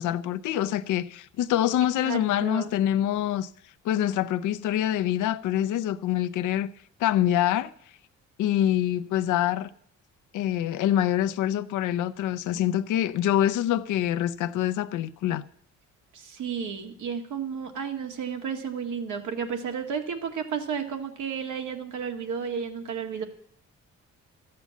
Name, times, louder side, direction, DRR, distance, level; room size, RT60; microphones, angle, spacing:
voice 1, 0.0-3.5 3.8-6.7 7.0-7.7 8.4-9.7 10.3-15.4, left 11 dB, 80° left, 0.7 m, -25 dB
voice 2, 2.0-2.7 16.1-23.2, right 7 dB, 75° right, 2.1 m, -32 dB
14.0 x 8.7 x 8.4 m
cardioid pair, 90°, 30 cm